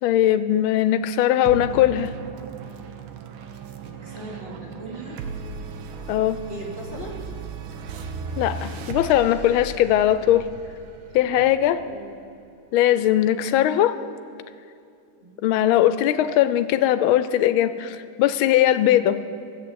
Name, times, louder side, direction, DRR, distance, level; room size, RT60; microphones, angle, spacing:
voice 1, 0.0-2.1 6.1-6.4 8.4-10.4 11.1-11.8 12.7-14.0 15.4-19.2, left 12 dB, 85° left, 13 dB, 1.4 m, -20 dB
sound 1, 1.4-12.2, right 4 dB, 80° right, 1.6 m, -36 dB
voice 2, 3.8-5.2 6.5-7.2 11.8-12.1 15.2-15.4, right 1 dB, 25° right, -4 dB, 2.8 m, -38 dB
14.0 x 8.0 x 8.8 m, 2.5 s
omnidirectional pair, 2.2 m